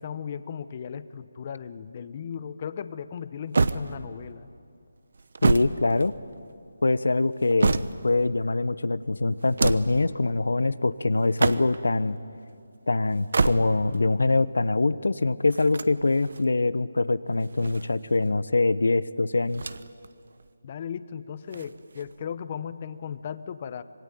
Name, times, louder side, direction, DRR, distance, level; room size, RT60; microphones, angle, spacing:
voice 1, 0.0-4.5 20.6-23.8, left 7 dB, 30° left, 14 dB, 0.9 m, -36 dB
Heavy bag drop, 3.5-4.4 5.1-6.5 7.2-8.2 9.4-10.1 11.2-11.9 13.1-14.0 15.5-16.5 17.4-18.3 19.5-20.1 20.4-20.5 21.5-22.3, right 4 dB, 60° right, 0.9 m, -28 dB
voice 2, 5.4-6.1 6.8-12.2 12.9-19.6, left 3 dB, 80° left, 16 dB, 0.9 m, -24 dB
26.0 x 19.5 x 9.3 m, 2.4 s
figure-of-eight pair, 165°, 0 cm